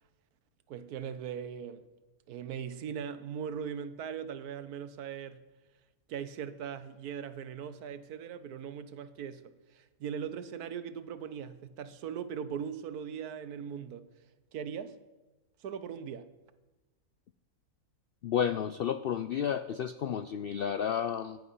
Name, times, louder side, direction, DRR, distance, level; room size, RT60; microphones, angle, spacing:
voice 1, 0.7-1.8 2.3-5.4 6.1-14.1 14.5-15.0 15.6-16.3, right 8 dB, 85° right, 1.3 m, -39 dB
voice 2, 18.2-21.4, left 8 dB, 80° left, 0.5 m, -31 dB
15.0 x 11.0 x 5.5 m
omnidirectional pair, 1.6 m